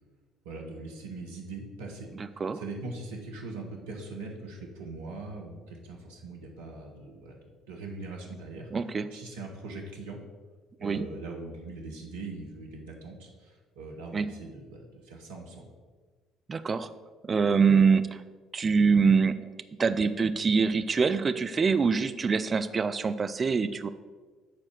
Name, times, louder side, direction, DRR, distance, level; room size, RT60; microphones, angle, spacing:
voice 1, 0.4-7.4 7.7-8.7 9.1-10.2 10.8-15.7, right 3 dB, 70° right, -1 dB, 1.2 m, -41 dB
voice 2, 8.7-9.1 10.8-11.1 14.1-14.3 16.5-16.9 17.2-18.2 18.5-19.4 19.8-23.9, right 5 dB, 30° right, 10 dB, 0.4 m, -24 dB
7.7 x 4.3 x 6.2 m, 1.4 s
figure-of-eight pair, 50°, 0 cm